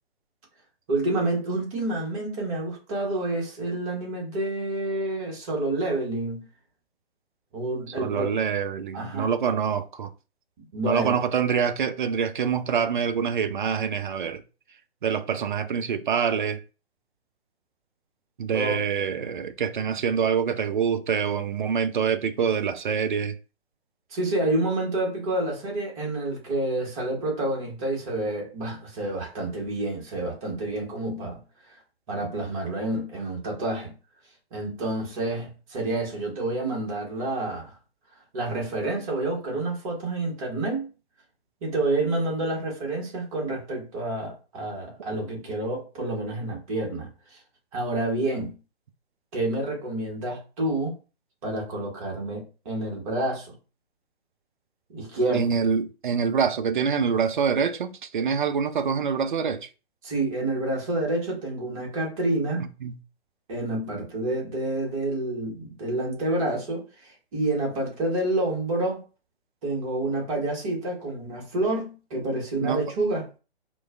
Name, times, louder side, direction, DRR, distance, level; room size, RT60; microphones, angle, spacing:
voice 1, 0.9-6.4 7.5-8.3 8.9-9.3 10.7-11.1 18.5-18.8 24.1-31.4 31.7-31.8 32.1-33.9 34.5-37.8 38.3-40.9 41.6-47.4 47.7-48.6 49.3-50.9 51.4-53.5 54.9-55.5 60.0-62.7 63.5-69.0 69.6-73.3, right 2 dB, 35° right, 1.4 m, -28 dB
voice 2, 8.0-10.1 10.9-14.4 15.0-16.6 18.4-23.4 55.3-59.7 62.8-63.0 72.6-72.8, right 7 dB, 50° right, 0.4 m, -25 dB
4.4 x 2.2 x 2.4 m
figure-of-eight pair, 130°, 33 cm